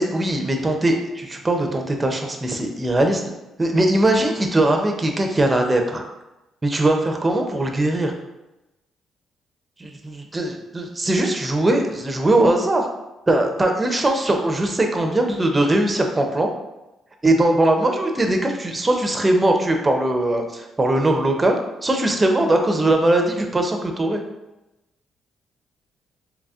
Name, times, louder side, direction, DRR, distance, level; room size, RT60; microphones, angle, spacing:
voice 1, 0.0-3.2 3.6-6.1 6.6-8.1 9.8-12.9 13.3-16.5 17.2-24.2, right 1 dB, 20° right, 3 dB, 0.5 m, -20 dB
4.0 x 2.9 x 2.4 m, 0.97 s
cardioid pair, 95°, 0 cm